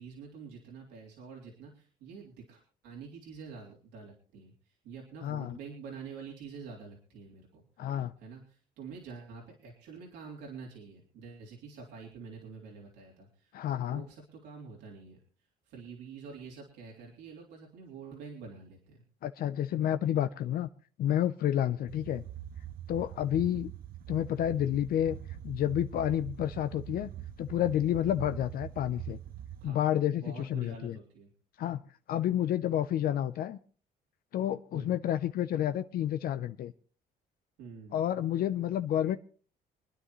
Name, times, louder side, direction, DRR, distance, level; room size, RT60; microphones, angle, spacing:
voice 1, 0.0-7.6 8.2-13.5 13.9-15.2 15.6-19.0 21.8-22.0 23.3-23.6 29.6-31.3 34.7-35.0 37.6-38.1, right 5 dB, 85° right, -2 dB, 3.5 m, -47 dB
voice 2, 5.2-5.6 7.8-8.1 13.5-14.0 19.2-20.7 21.0-22.2 22.9-23.7 24.1-25.2 25.4-27.1 27.4-29.2 29.6-31.0 31.6-31.8 32.1-33.6 34.3-36.7 37.9-39.2, left 11 dB, 60° left, 11 dB, 0.6 m, -30 dB
sound 1, 21.9-29.7, right 11 dB, 60° right, 0.7 m, -43 dB
26.5 x 10.0 x 3.1 m, 0.40 s
cardioid pair, 110°, 17 cm